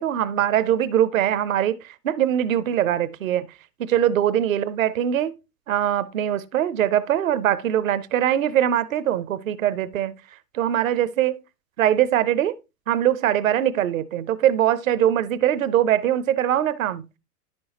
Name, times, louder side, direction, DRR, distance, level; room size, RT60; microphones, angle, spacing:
voice 1, 0.0-3.5 3.8-5.3 5.7-10.1 10.5-11.4 11.8-12.6 12.9-17.0, right 11 dB, 60° right, 0.8 m, -22 dB
10.5 x 6.2 x 2.9 m
figure-of-eight pair, 95°, 46 cm